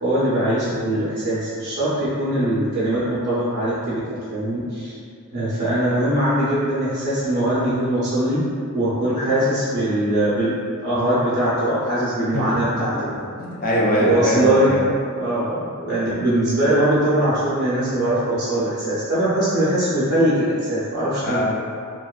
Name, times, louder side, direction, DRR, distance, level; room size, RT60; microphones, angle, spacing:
voice 1, 0.0-5.0 5.3-8.4 8.7-12.9 13.9-14.8 15.2-15.6 15.9-21.4, right 1 dB, 45° right, -11 dB, 0.5 m, -21 dB
voice 2, 12.3-12.9 13.1-14.8 21.2-21.4, equal, 40° left, -5 dB, 0.5 m, -22 dB
2.4 x 2.2 x 2.3 m, 2.3 s
head